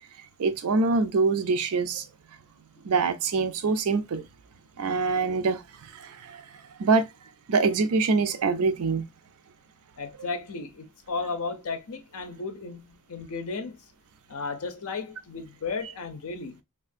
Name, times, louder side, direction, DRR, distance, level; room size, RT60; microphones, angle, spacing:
voice 1, 0.4-2.1 2.8-4.3 4.8-5.6 5.9-6.4 6.8-7.1 7.5-9.0, right 4 dB, 85° right, 0.5 m, -24 dB
voice 2, 10.0-13.8 14.3-16.6, left 4 dB, 75° left, 0.6 m, -34 dB
3.4 x 2.4 x 2.5 m
head